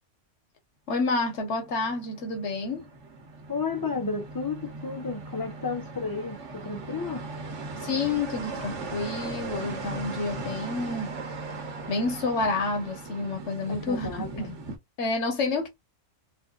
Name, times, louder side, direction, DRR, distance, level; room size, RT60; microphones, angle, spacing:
voice 1, 0.9-2.9 7.8-11.2 11.9-14.5 15.0-15.7, left 3 dB, 65° left, 1.3 m, -29 dB
sound 1, 1.3-14.8, right 3 dB, 75° right, 1.3 m, -38 dB
voice 2, 3.5-7.2 13.7-14.5, left 4 dB, 25° left, 0.5 m, -32 dB
3.8 x 2.5 x 2.4 m
omnidirectional pair, 1.3 m